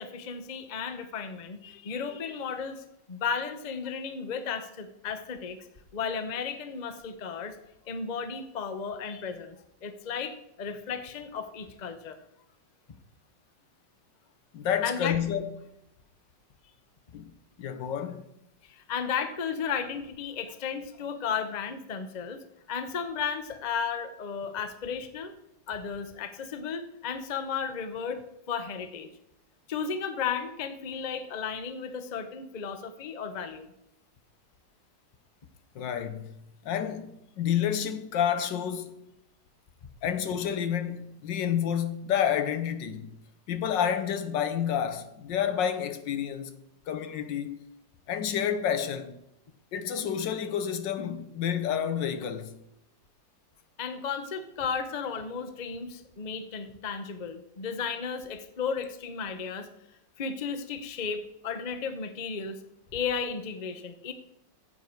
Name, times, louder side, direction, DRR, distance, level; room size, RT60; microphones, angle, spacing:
voice 1, 0.0-5.6 5.9-7.5 7.9-9.6 9.8-12.2 14.8-15.2 18.7-22.4 22.7-25.3 25.7-28.2 28.5-29.1 29.7-33.7 53.8-59.7 60.2-62.6 62.9-64.1, left 6 dB, 35° left, 0.7 m, -34 dB
voice 2, 14.5-15.5 17.1-17.3 17.6-18.3 35.7-36.4 36.6-39.0 40.0-43.1 43.5-47.6 48.1-49.2 49.7-52.5, left 9 dB, 80° left, 1.6 m, -29 dB
14.5 x 8.0 x 4.5 m
omnidirectional pair, 2.0 m